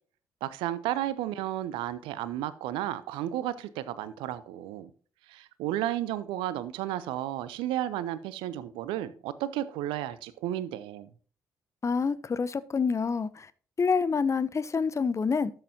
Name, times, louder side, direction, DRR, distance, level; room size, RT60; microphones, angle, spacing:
voice 1, 0.4-4.9 5.3-11.1, right 13 dB, 70° right, 0.7 m, -33 dB
voice 2, 11.8-13.3 13.8-15.5, left 5 dB, 35° left, 0.7 m, -27 dB
12.5 x 7.8 x 2.7 m
figure-of-eight pair, 45°, 9 cm